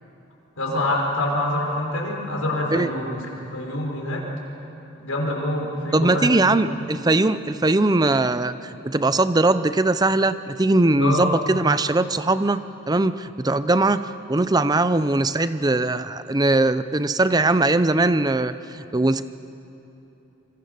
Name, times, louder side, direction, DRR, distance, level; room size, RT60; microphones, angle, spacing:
voice 1, 0.6-3.2 3.5-4.2 5.0-6.6 11.0-11.3, left 1 dB, 80° left, -1 dB, 5.3 m, -25 dB
voice 2, 5.9-8.5 8.8-19.2, right 2 dB, 20° right, 12 dB, 0.5 m, -20 dB
26.0 x 25.5 x 6.8 m, 2.9 s
head